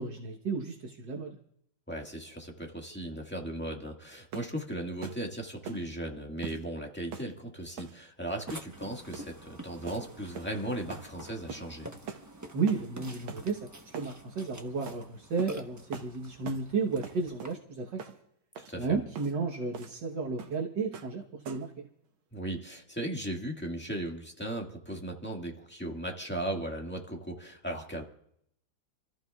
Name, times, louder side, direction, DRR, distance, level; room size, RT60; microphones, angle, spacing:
voice 1, 0.0-1.4 12.5-18.0 18.8-21.9, right 4 dB, 60° right, -1 dB, 1.8 m, -33 dB
voice 2, 1.9-11.9 18.7-19.0 22.3-28.0, right 1 dB, 5° left, 0 dB, 1.5 m, -37 dB
sound 1, 4.3-4.6 5.0-5.2 5.6-5.9 6.4-6.6 7.1-7.3 7.8-8.0 8.5-8.8 9.1-9.3 9.9-10.0 10.3-10.6 10.9-11.1 11.5-11.7 12.1-12.3 12.7-12.9 13.3-13.4 13.9-14.1 14.9-15.0 15.4-15.6 15.9-16.1 16.4-16.7 17.0-17.6 18.0-18.2 18.5-18.7 19.1-19.3 19.7-20.0 20.4-20.6 20.9-21.1 21.4-21.7, right 6 dB, 80° right, 1.8 m, -43 dB
Burping eructation, 8.5-17.5, right 1 dB, 20° right, 0.5 m, -47 dB
29.0 x 14.5 x 2.4 m, 0.73 s
omnidirectional pair, 2.3 m